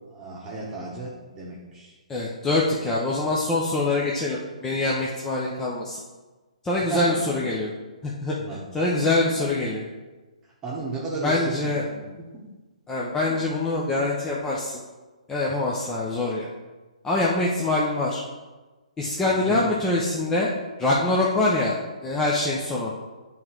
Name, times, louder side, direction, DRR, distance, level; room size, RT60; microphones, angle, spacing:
voice 1, 0.1-1.9 6.9-7.0 8.4-8.6 10.6-12.4 19.3-19.8, right 3 dB, 15° right, -6 dB, 1.3 m, -34 dB
voice 2, 2.1-6.0 6.6-7.7 8.0-8.4 8.7-9.8 11.2-11.8 12.9-14.8 15.3-16.5 17.0-18.2 19.0-20.5 20.8-21.8 22.0-22.9, left 2 dB, 10° left, -5 dB, 0.8 m, -24 dB
9.0 x 3.8 x 4.6 m, 1.2 s
figure-of-eight pair, 130°, 4 cm